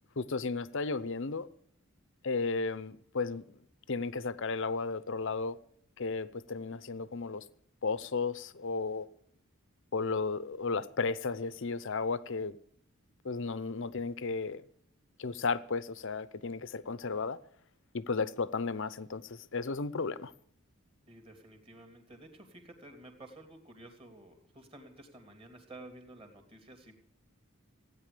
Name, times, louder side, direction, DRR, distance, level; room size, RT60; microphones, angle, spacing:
voice 1, 0.2-1.5 2.2-3.5 3.9-5.6 6.0-7.4 7.8-9.1 9.9-12.6 13.2-14.6 15.2-17.4 17.9-20.3, left 4 dB, 60° left, 0.7 m, -34 dB
voice 2, 21.1-26.9, right 1 dB, 25° right, 2.7 m, -52 dB
16.5 x 9.7 x 6.8 m
head